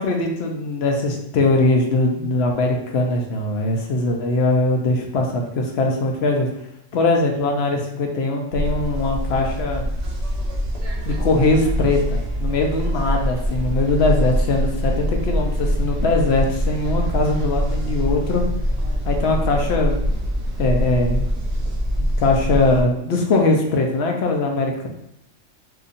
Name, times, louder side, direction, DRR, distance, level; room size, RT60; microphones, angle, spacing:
voice 1, 0.0-6.5 6.9-9.8 11.0-18.4 19.1-20.0 20.6-21.2 22.2-24.9, left 2 dB, 60° left, 2 dB, 0.8 m, -21 dB
sound 1, 8.5-22.8, equal, 40° right, 0.6 m, -24 dB
3.9 x 2.8 x 2.5 m, 0.81 s
omnidirectional pair, 1.3 m